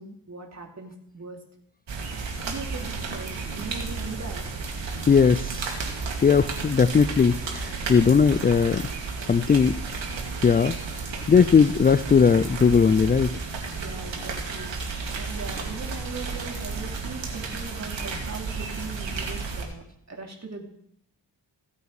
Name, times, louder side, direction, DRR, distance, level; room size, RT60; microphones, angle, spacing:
voice 1, 0.0-1.4 2.4-4.4 13.8-14.7 15.1-20.7, right 4 dB, 35° right, 2 dB, 2.9 m, -39 dB
sound 1, 1.9-19.6, right 4 dB, 75° right, 2.4 m, -32 dB
voice 2, 5.1-5.7 6.2-8.8 9.3-9.8 10.4-10.7 11.3-13.4, left 6 dB, 20° left, 13 dB, 0.4 m, -19 dB
16.0 x 8.3 x 4.8 m, 0.71 s
cardioid pair, 75°, 45 cm